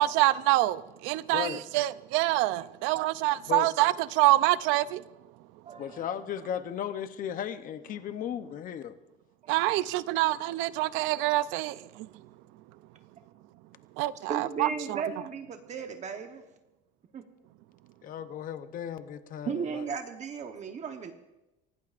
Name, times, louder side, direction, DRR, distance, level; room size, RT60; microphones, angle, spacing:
voice 1, 0.0-5.0 9.5-12.1 14.0-15.0, right 17 dB, 90° right, 0.6 m, -26 dB
voice 2, 1.3-1.6 3.5-3.7 5.8-9.0 18.0-19.9, left 9 dB, 45° left, 0.8 m, -35 dB
voice 3, 5.7-6.2 9.4-9.7 14.3-16.4 17.1-17.2 19.4-21.1, right 6 dB, 40° right, 1.1 m, -36 dB
24.5 x 18.0 x 2.5 m
cardioid pair, 140°, 19 cm